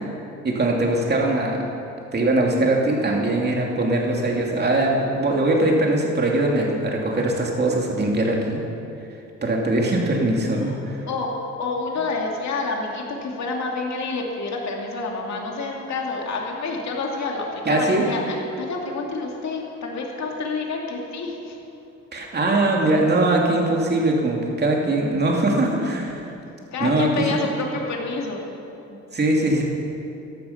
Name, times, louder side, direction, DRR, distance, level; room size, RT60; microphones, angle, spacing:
voice 1, 0.4-1.6 2.1-8.6 9.4-11.0 17.7-18.0 22.1-26.3 26.8-27.2 28.9-29.6, right 2 dB, 35° right, -1 dB, 2.7 m, -21 dB
voice 2, 11.1-21.6 26.7-28.5, left 3 dB, 65° left, 0 dB, 2.6 m, -28 dB
14.5 x 11.5 x 5.9 m, 2.8 s
cardioid pair, 90°, 30 cm